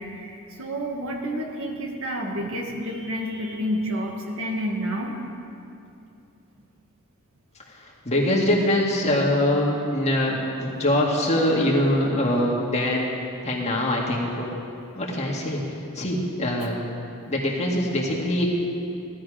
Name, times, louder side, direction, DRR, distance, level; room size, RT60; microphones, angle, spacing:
voice 1, 0.0-5.2, equal, 65° right, 1 dB, 1.9 m, -29 dB
voice 2, 7.7-13.1 13.4-14.5 14.9-15.6 15.9-16.8 17.3-18.5, left 1 dB, 30° left, -2 dB, 2.2 m, -23 dB
17.0 x 12.5 x 5.0 m, 2.6 s
head